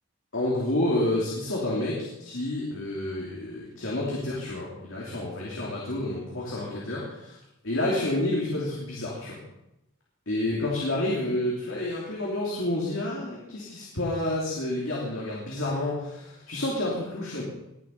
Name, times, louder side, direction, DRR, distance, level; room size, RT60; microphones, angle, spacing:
voice 1, 0.3-7.4 7.6-9.4 10.3-17.4, left 1 dB, 65° left, -5 dB, 3.1 m, -29 dB
20.5 x 7.5 x 5.4 m, 0.89 s
head